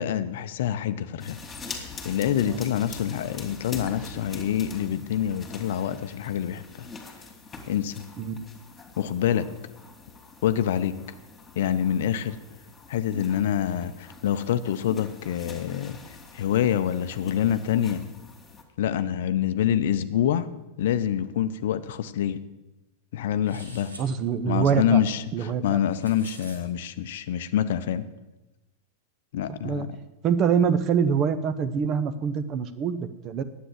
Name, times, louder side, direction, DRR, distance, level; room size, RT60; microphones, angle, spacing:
voice 1, 0.0-1.4 2.0-6.9 7.7-8.0 9.0-9.5 10.4-10.9 11.6-12.4 12.9-16.0 16.3-18.0 18.8-20.5 20.8-22.4 23.1-23.9 24.5-28.1 29.3-29.9, left 10 dB, 60° left, 12 dB, 0.6 m, -26 dB
sound 1, 1.2-18.6, left 3 dB, 15° left, 2.3 m, -44 dB
sound 2, 23.4-24.1 25.7-26.6, right 1 dB, 85° right, 2.0 m, -46 dB
voice 2, 24.0-25.0 25.3-25.8 29.6-29.9 30.2-33.4, right 7 dB, 35° right, 12 dB, 0.8 m, -25 dB
10.0 x 8.2 x 7.6 m, 1.0 s
figure-of-eight pair, 90°, 0 cm